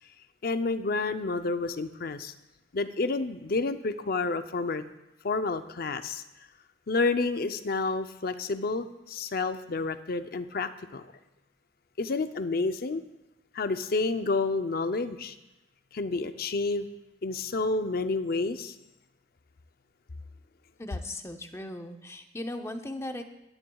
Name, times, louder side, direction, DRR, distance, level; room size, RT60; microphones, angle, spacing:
voice 1, 0.4-2.3 2.7-4.8 5.2-6.2 6.9-11.0 12.0-13.0 13.5-15.3 15.9-16.9 17.2-18.8, left 3 dB, 55° left, 10 dB, 0.6 m, -29 dB
voice 2, 20.8-23.2, left 1 dB, 15° left, 6 dB, 0.7 m, -38 dB
17.5 x 10.5 x 2.3 m, 0.96 s
head